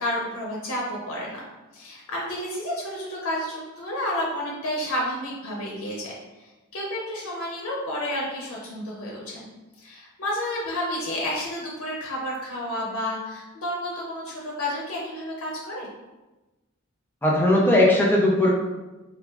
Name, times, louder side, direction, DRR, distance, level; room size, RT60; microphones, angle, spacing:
voice 1, 0.0-1.4 1.7-9.5 9.8-15.9, left 1 dB, 80° left, -3 dB, 0.5 m, -31 dB
voice 2, 17.2-18.5, left 1 dB, 10° left, -3 dB, 0.4 m, -18 dB
3.1 x 2.3 x 2.3 m, 1.1 s
head